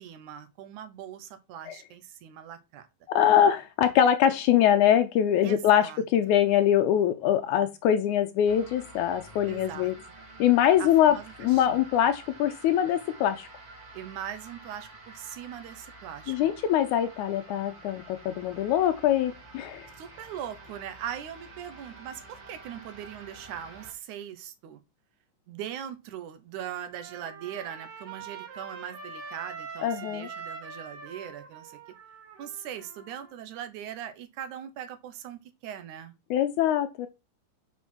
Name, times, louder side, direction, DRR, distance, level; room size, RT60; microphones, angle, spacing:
voice 1, 0.0-2.9 5.4-6.0 9.5-9.9 10.8-11.8 13.9-16.4 20.0-24.8 25.5-31.8 32.4-36.2, right 10 dB, 75° right, 2.2 m, -40 dB
voice 2, 3.1-9.9 10.4-13.5 16.3-19.9 29.8-30.3 36.3-37.1, left 10 dB, 80° left, 1.9 m, -23 dB
sound 1, 8.5-23.9, right 2 dB, 45° right, 3.1 m, -49 dB
Trumpet, 26.7-33.3, right 5 dB, 90° right, 3.4 m, -44 dB
6.2 x 4.4 x 6.0 m
omnidirectional pair, 3.8 m